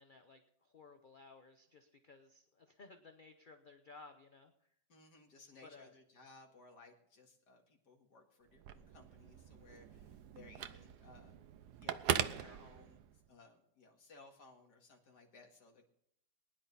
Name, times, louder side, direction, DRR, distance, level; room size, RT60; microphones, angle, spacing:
voice 1, 0.0-4.5 5.6-5.9, left 3 dB, 40° left, 6 dB, 0.7 m, -58 dB
voice 2, 4.9-11.3 11.8-15.9, left 3 dB, 65° left, 2 dB, 2.6 m, -61 dB
Telephone, 8.5-13.3, right 9 dB, 70° right, 1.2 m, -41 dB
20.5 x 10.5 x 4.2 m, 0.71 s
omnidirectional pair, 2.0 m